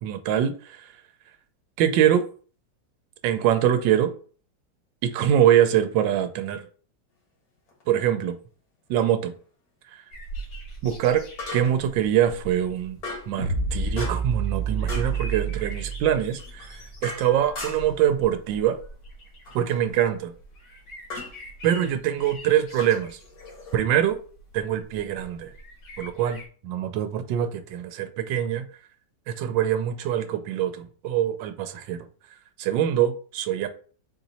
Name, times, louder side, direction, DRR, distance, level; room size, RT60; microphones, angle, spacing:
voice 1, 0.0-0.9 1.8-2.2 3.2-4.1 5.0-6.6 7.9-8.4 8.9-9.3 9.9-10.0 10.8-11.2 11.5-13.0 13.3-18.8 19.5-20.3 21.6-23.2 23.7-24.2 24.5-25.5 26.0-28.7 29.3-32.1 32.6-33.7, right 10 dB, 90° right, 1.3 m, -24 dB
sound 1, 7.7-7.8 11.4-11.9 13.0-13.4 14.0-14.4 14.9-15.2 16.4-18.0 19.4-19.8 21.1-21.4 22.8-23.8, left 3 dB, 55° left, 1.8 m, -37 dB
sound 2, 10.1-26.5, right 1 dB, 75° left, 2.0 m, -43 dB
sound 3, 13.4-16.8, right 5 dB, 15° left, 0.8 m, -28 dB
4.2 x 2.9 x 4.0 m
omnidirectional pair, 2.0 m